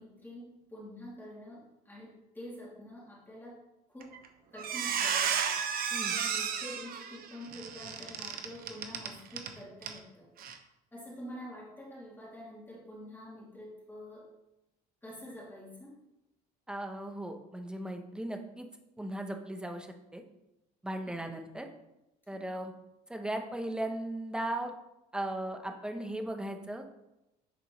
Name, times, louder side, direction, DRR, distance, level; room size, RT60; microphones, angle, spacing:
voice 1, 0.0-3.6 3.9-4.2 4.5-10.3 10.9-14.3 15.0-16.0 21.1-21.2 22.3-22.4, left 1 dB, 10° left, -7 dB, 2.6 m, -47 dB
Squeak, 4.0-4.3 4.6-9.5 9.8-10.0 10.4-10.5, right 7 dB, 60° right, 0.8 m, -33 dB
voice 2, 16.7-18.7 19.0-20.2 20.8-21.7 22.3-22.7 23.1-24.7 25.1-27.1, right 1 dB, 5° right, 4 dB, 0.8 m, -37 dB
10.0 x 4.2 x 3.1 m, 0.93 s
cardioid pair, 110°, 17 cm